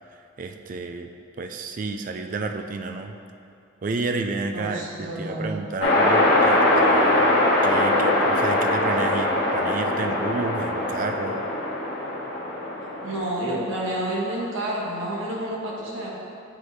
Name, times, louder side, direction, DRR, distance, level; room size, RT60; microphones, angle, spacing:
voice 1, 0.4-1.1 1.4-3.2 3.8-7.4 7.6-11.4, right 3 dB, 40° right, 6 dB, 0.3 m, -31 dB
voice 2, 4.5-5.5 13.0-16.1, right 1 dB, 85° right, -5 dB, 1.3 m, -29 dB
sound 1, 5.8-13.2, left 1 dB, 55° left, 1.2 m, -21 dB
9.4 x 3.3 x 4.1 m, 2.6 s
head